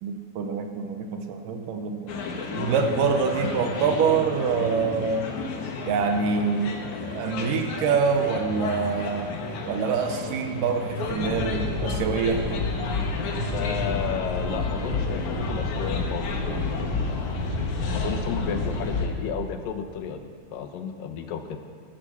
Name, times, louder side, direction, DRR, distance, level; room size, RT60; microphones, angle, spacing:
voice 1, 0.0-2.1 2.5-5.4 5.9-9.3 9.7-12.4, right 5 dB, 75° right, 5 dB, 2.3 m, -25 dB
sound 1, 2.1-19.1, left 4 dB, 60° left, 2.6 m, -33 dB
sound 2, 11.1-19.1, left 3 dB, 20° left, 4.8 m, -29 dB
voice 2, 13.5-17.3 17.9-21.6, left 7 dB, 80° left, 7 dB, 2.5 m, -33 dB
13.0 x 12.0 x 6.8 m, 2.1 s
omnidirectional pair, 4.1 m